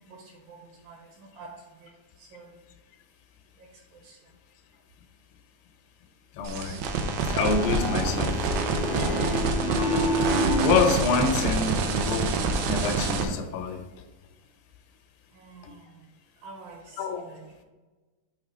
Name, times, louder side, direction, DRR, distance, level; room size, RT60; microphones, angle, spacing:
voice 1, 0.0-2.6 3.5-4.3 15.3-16.1 16.4-17.5, right 4 dB, 70° right, -1 dB, 2.6 m, -49 dB
voice 2, 6.3-6.8 7.3-8.5 8.9-9.2 10.6-13.8 15.6-15.7 17.0-17.2, left 5 dB, 80° left, 6 dB, 2.6 m, -27 dB
sound 1, 6.4-13.2, right 4 dB, 90° right, 3.0 m, -27 dB
Piano, 7.6-11.0, equal, 45° left, 0.9 m, -28 dB
9.0 x 3.7 x 5.1 m, 1.2 s
omnidirectional pair, 4.8 m